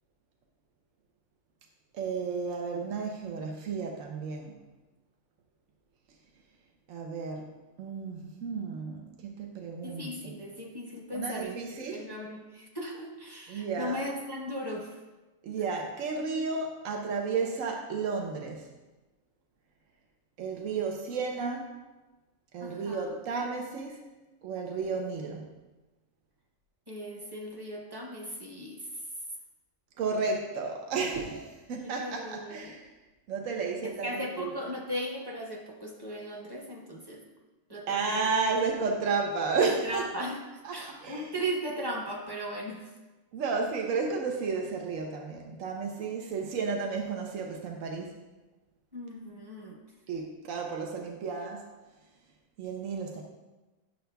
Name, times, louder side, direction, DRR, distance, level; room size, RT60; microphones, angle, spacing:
voice 1, 1.9-4.5 6.9-7.5 7.8-10.3 11.1-12.1 13.5-14.0 15.4-18.6 20.4-21.7 22.5-24.0 24.4-25.5 30.0-32.8 33.3-34.5 37.9-40.3 40.6-41.3 43.3-48.1 50.1-51.7 52.6-53.2, right 4 dB, 80° right, 1 dB, 1.1 m, -32 dB
voice 2, 9.8-14.9 22.6-23.1 26.9-28.8 31.8-32.8 34.0-37.2 37.7-38.2 39.6-40.4 40.7-42.9 48.9-49.8, equal, 20° right, 0 dB, 0.9 m, -37 dB
10.0 x 6.6 x 2.2 m, 1.1 s
omnidirectional pair, 1.4 m